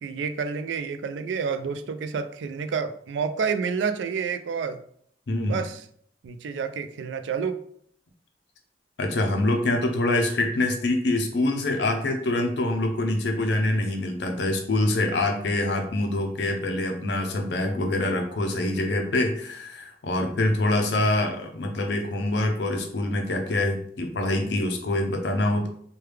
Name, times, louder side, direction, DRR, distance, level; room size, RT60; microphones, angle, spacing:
voice 1, 0.0-4.8 5.5-5.8 6.2-7.6, right 6 dB, 85° right, 9 dB, 0.3 m, -29 dB
voice 2, 5.3-5.6 9.0-25.7, left 2 dB, 65° left, 4 dB, 0.5 m, -25 dB
3.2 x 2.3 x 3.2 m, 0.63 s
head